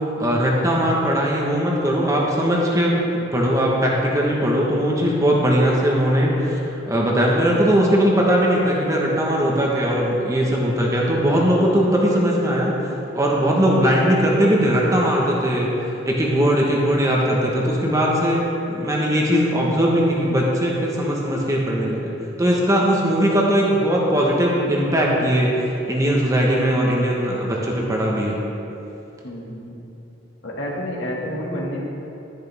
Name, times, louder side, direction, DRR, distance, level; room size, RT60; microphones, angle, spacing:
voice 1, 0.2-3.0 3.3-6.3 6.7-12.7 13.1-22.1 22.4-28.4, equal, 15° right, -3 dB, 1.3 m, -19 dB
voice 2, 26.6-27.0 29.2-29.8 30.4-31.8, equal, 70° left, -3 dB, 2.0 m, -29 dB
11.0 x 11.0 x 3.5 m, 3.0 s
head